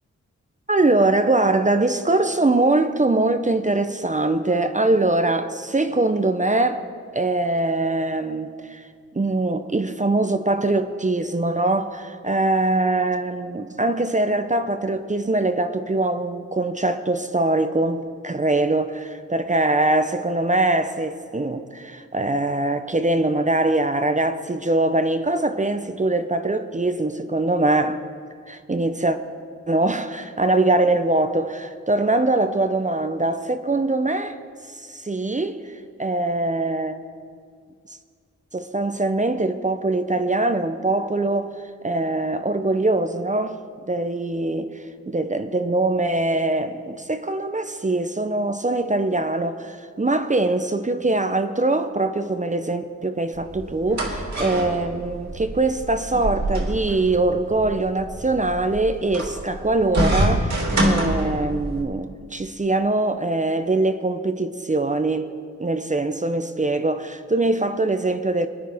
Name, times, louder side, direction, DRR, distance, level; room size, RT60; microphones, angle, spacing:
voice 1, 0.7-6.8 7.1-8.8 9.1-28.0 28.5-29.2 29.7-34.4 34.7-37.0 38.5-41.5 41.8-43.6 43.9-44.8 45.1-65.3 65.6-68.5, right 2 dB, 25° right, 0.8 m, -22 dB
sound 1, 53.3-61.8, right 1 dB, 65° right, 2.7 m, -26 dB
21.5 x 9.8 x 3.6 m
cardioid pair, 45°, 31 cm